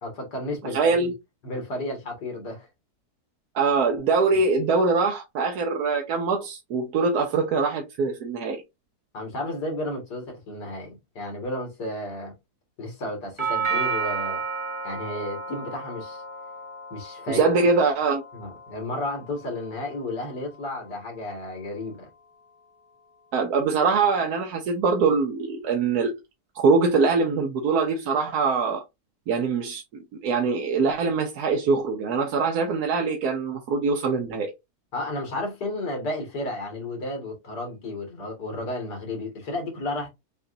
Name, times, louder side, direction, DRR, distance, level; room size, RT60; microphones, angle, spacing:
voice 1, 0.0-1.1 1.4-2.7 4.3-4.4 9.1-12.3 12.8-14.4 14.8-16.2 16.9-17.4 18.3-22.1 34.9-40.1, left 1 dB, 80° left, 2.3 m, -32 dB
voice 2, 0.7-1.1 3.5-8.6 17.3-18.2 23.3-26.1 26.5-28.8 29.3-34.5, right 4 dB, 70° right, 1.3 m, -23 dB
Doorbell, 13.4-21.4, right 5 dB, 40° right, 0.4 m, -33 dB
6.8 x 2.6 x 2.6 m
omnidirectional pair, 1.7 m